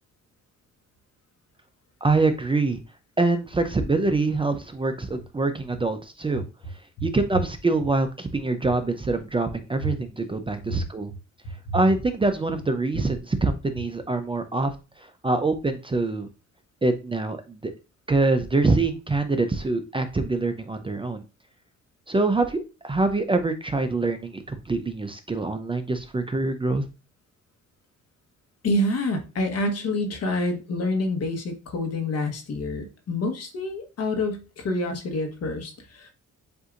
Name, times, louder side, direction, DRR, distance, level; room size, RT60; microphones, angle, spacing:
voice 1, 2.0-2.8 3.2-6.4 7.0-11.1 11.7-14.7 15.2-16.3 16.8-17.7 18.1-21.2 22.1-26.8, right 3 dB, 15° right, 7 dB, 0.5 m, -24 dB
voice 2, 28.6-36.1, left 1 dB, 55° left, 5 dB, 1.2 m, -27 dB
7.9 x 2.7 x 2.5 m, 0.30 s
cardioid pair, 90°, 30 cm